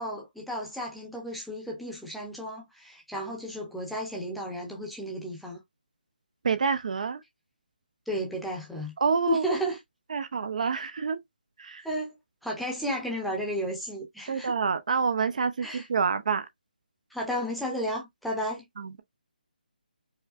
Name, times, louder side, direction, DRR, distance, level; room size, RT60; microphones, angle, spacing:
voice 1, 0.0-5.6 8.1-8.9 9.3-9.8 11.8-12.2 12.4-14.5 15.6-15.9 17.1-18.6, equal, ahead, 0.7 m, -33 dB
voice 2, 6.4-7.2 9.0-9.4 10.1-11.2 11.6-11.9 14.3-16.5 18.8-19.0, right 5 dB, 50° right, 0.4 m, -27 dB
4.8 x 2.1 x 2.5 m
hypercardioid pair, 165°, 5 cm